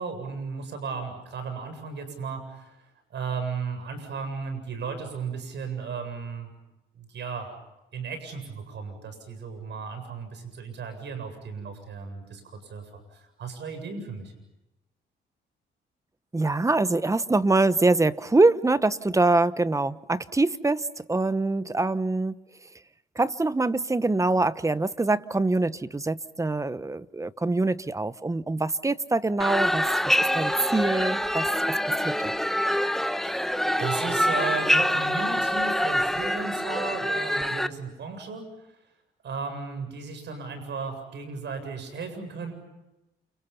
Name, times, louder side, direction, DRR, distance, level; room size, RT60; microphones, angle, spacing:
voice 1, 0.0-2.8 3.1-6.5 7.0-7.5 7.9-14.3 33.2-33.5 33.8-38.5 39.2-42.5, right 5 dB, 65° right, 7.8 m, -35 dB
voice 2, 16.3-22.3 23.2-31.8 32.0-32.3, right 2 dB, 15° right, 1.0 m, -24 dB
sound 1, 29.4-37.7, equal, ahead, 1.3 m, -25 dB
30.0 x 29.5 x 5.7 m
cardioid pair, 90°, 20 cm